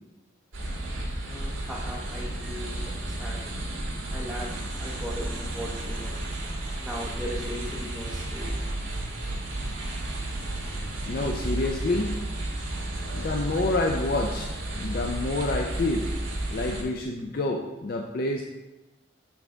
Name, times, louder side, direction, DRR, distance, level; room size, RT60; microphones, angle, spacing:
sound 1, 0.5-16.8, right 1 dB, 80° right, 1.2 m, -32 dB
voice 1, 1.2-3.4 4.1-6.2 6.8-8.5, equal, ahead, -6 dB, 0.6 m, -38 dB
voice 2, 11.1-12.1 13.1-16.1 16.5-18.4, left 2 dB, 50° left, 2 dB, 0.4 m, -28 dB
6.9 x 3.8 x 3.5 m, 1.1 s
head